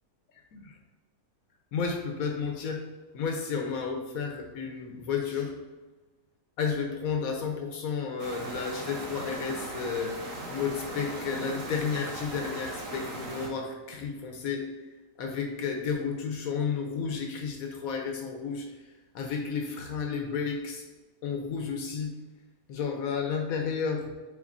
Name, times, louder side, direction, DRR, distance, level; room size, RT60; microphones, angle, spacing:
voice 1, 1.7-2.8 3.1-5.5 6.6-10.2 10.5-14.6 15.2-18.7 19.1-20.8 21.2-22.1 22.7-24.1, left 6 dB, 85° left, 2 dB, 1.2 m, -32 dB
sound 1, 8.2-13.5, right 2 dB, 70° right, 1.5 m, -38 dB
9.5 x 3.9 x 2.6 m, 1.3 s
omnidirectional pair, 1.5 m